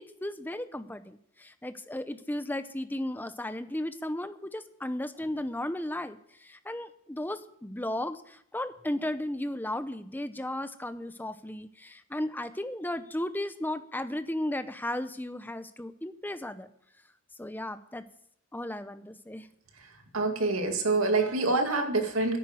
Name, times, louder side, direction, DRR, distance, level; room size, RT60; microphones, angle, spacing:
voice 1, 0.0-16.7 17.4-18.1 18.5-19.5, left 1 dB, 10° left, 11 dB, 0.7 m, -35 dB
voice 2, 19.7-22.4, right 3 dB, 80° right, 4 dB, 2.3 m, -27 dB
10.5 x 9.0 x 7.8 m, 0.67 s
head